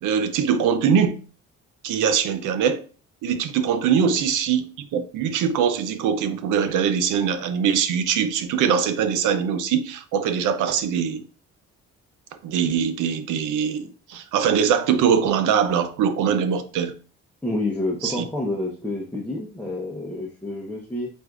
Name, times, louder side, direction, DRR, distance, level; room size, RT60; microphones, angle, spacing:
voice 1, 0.0-1.2 1.8-2.8 3.2-11.2 12.4-16.9 18.0-18.2, right 7 dB, 85° right, 0.6 m, -22 dB
voice 2, 17.4-21.1, left 2 dB, 5° left, 0.8 m, -29 dB
7.8 x 2.6 x 2.4 m
cardioid pair, 90°, 30 cm